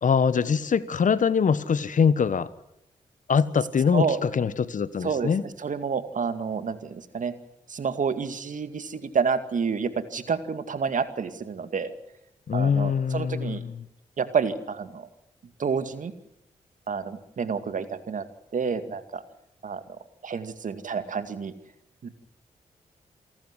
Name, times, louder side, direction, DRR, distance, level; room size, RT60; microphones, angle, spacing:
voice 1, 0.0-2.5 3.3-5.4 12.5-13.8, left 6 dB, 60° left, 16 dB, 1.3 m, -23 dB
voice 2, 5.6-7.4 7.7-11.9 12.5-13.6 14.2-15.1 15.6-16.1 16.9-18.2 18.5-19.2 19.6-19.8 20.2-21.5 22.0-22.1, right 6 dB, 60° right, 10 dB, 2.2 m, -29 dB
28.0 x 12.0 x 9.8 m, 0.81 s
supercardioid pair, 40°, 15 cm